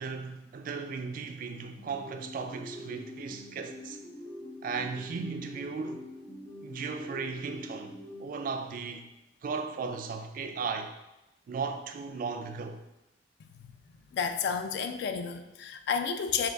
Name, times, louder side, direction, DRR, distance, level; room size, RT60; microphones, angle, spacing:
voice 1, 0.0-4.0 4.6-6.1 6.6-9.1 9.4-10.9 11.5-12.8, right 5 dB, 50° right, 0.3 m, -36 dB
sound 1, 1.8-8.9, left 1 dB, 15° left, 0.6 m, -45 dB
voice 2, 14.1-16.5, left 6 dB, 65° left, 0.3 m, -31 dB
3.7 x 2.2 x 3.3 m
head